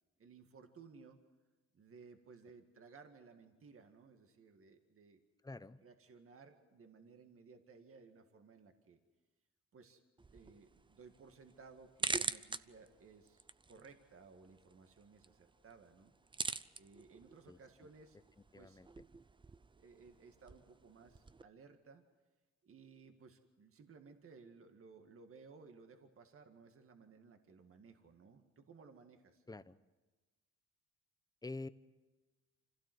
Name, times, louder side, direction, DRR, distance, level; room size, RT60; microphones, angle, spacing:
voice 1, 0.2-1.2 1.7-5.2 5.8-9.0 9.7-10.0 10.3-16.1 16.8-18.2 18.5-18.8 19.8-22.0 22.6-29.4, right 5 dB, 45° right, 6 dB, 2.0 m, -59 dB
voice 2, 5.4-5.8 17.5-17.6 18.5-18.9 29.5-29.8 31.4-31.7, left 2 dB, 10° left, 13 dB, 0.8 m, -46 dB
sound 1, 10.2-21.4, right 3 dB, 15° right, 0.6 m, -46 dB
26.0 x 16.5 x 7.9 m, 1.2 s
cardioid pair, 90°, 30 cm